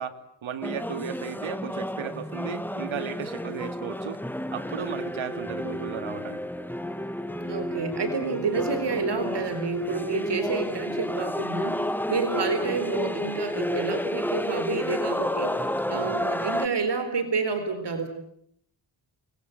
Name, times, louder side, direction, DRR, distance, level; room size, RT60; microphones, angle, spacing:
voice 1, 0.0-4.2 4.5-6.4 15.9-16.3, right 8 dB, 80° right, 11 dB, 2.2 m, -35 dB
sound 1, 0.6-16.7, left 1 dB, 5° left, 1.3 m, -31 dB
voice 2, 7.4-18.1, right 4 dB, 60° right, 9 dB, 4.1 m, -29 dB
28.5 x 22.0 x 7.8 m, 0.71 s
cardioid pair, 85°, 47 cm